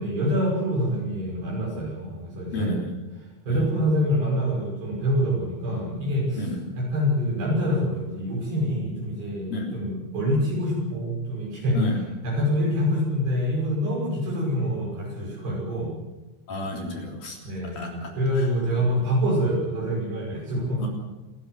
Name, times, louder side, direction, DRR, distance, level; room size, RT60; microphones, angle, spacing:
voice 1, 0.0-2.7 3.5-6.5 6.8-11.8 12.2-15.9 17.4-20.8, equal, 60° right, -4 dB, 8.1 m, -26 dB
voice 2, 2.5-2.9 3.5-3.7 6.3-6.8 9.5-9.7 11.7-12.0 16.5-18.8 20.8-20.9, left 2 dB, 50° left, 0 dB, 5.1 m, -31 dB
27.5 x 14.5 x 8.0 m, 1.1 s
omnidirectional pair, 5.3 m